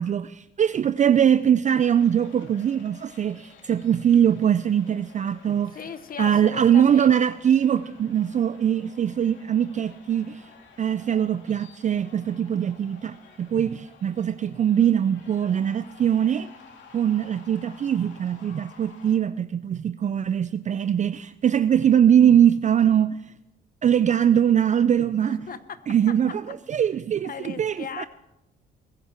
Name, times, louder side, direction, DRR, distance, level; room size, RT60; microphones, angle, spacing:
voice 1, 0.0-5.8 6.2-10.5 10.8-16.5 16.9-23.2 23.8-25.5 25.9-28.1, right 9 dB, 40° right, 0.4 m, -22 dB
sound 1, 1.9-19.2, left 5 dB, 70° left, 2.8 m, -52 dB
voice 2, 5.7-7.2 25.2-26.2 27.2-28.1, left 7 dB, 45° left, 1.0 m, -37 dB
21.5 x 9.7 x 4.4 m
cardioid pair, 90°, 20 cm